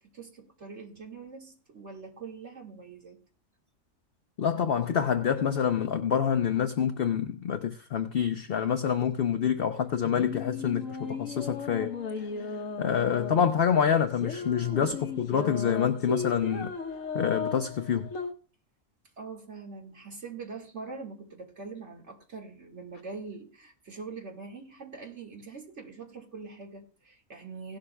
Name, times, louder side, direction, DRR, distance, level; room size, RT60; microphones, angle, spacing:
voice 1, 0.0-3.2 14.6-14.9 19.2-27.8, right 4 dB, 55° right, 2.3 m, -43 dB
voice 2, 4.4-11.9 12.8-16.7 17.1-18.1, left 8 dB, 55° left, 0.8 m, -27 dB
sound 1, 9.8-18.3, left 4 dB, 70° left, 1.3 m, -36 dB
17.0 x 11.5 x 2.2 m
omnidirectional pair, 1.4 m